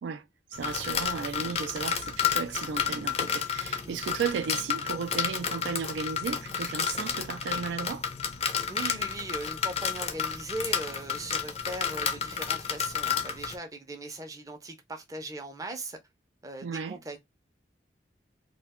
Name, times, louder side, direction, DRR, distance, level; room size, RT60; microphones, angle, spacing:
voice 1, 0.0-8.1 16.6-17.0, right 6 dB, 90° right, 0.3 m, -34 dB
sound 1, 0.5-13.6, left 7 dB, 35° left, 0.4 m, -31 dB
voice 2, 8.7-16.0 16.4-17.2, right 2 dB, 20° right, 0.5 m, -39 dB
2.3 x 2.2 x 3.5 m
head